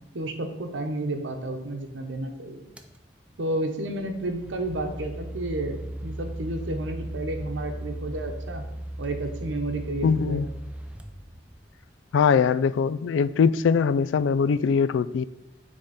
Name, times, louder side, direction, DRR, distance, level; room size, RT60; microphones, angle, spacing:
voice 1, 0.1-2.6 3.4-8.6 9.0-10.4, right 1 dB, 80° right, 5 dB, 0.9 m, -31 dB
sound 1, 2.8-3.0 3.9-11.9, right 1 dB, 5° right, 0.4 m, -37 dB
voice 2, 10.0-10.5 12.1-15.2, left 6 dB, 80° left, 16 dB, 0.3 m, -22 dB
9.9 x 3.6 x 4.1 m, 0.92 s
head